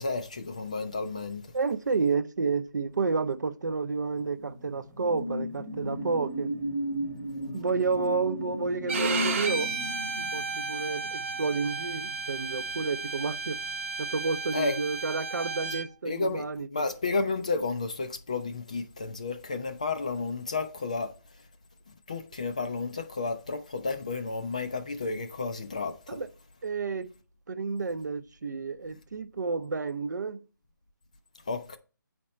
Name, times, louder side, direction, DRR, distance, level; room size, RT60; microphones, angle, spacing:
voice 1, 0.0-1.5 14.5-14.7 16.0-16.4 16.7-21.1 22.1-26.2 31.5-31.8, left 3 dB, 20° left, 0.3 m, -32 dB
voice 2, 1.5-6.5 7.5-9.7 10.2-13.6 14.0-16.9 26.1-26.3 26.6-27.1 27.5-30.4, right 4 dB, 60° right, 0.6 m, -30 dB
sound 1, 4.1-13.1 13.5-13.7, equal, 5° left, 0.9 m, -36 dB
Bowed string instrument, 8.9-15.9, right 4 dB, 35° right, 0.9 m, -33 dB
8.5 x 4.3 x 3.1 m
hypercardioid pair, 170°, 11 cm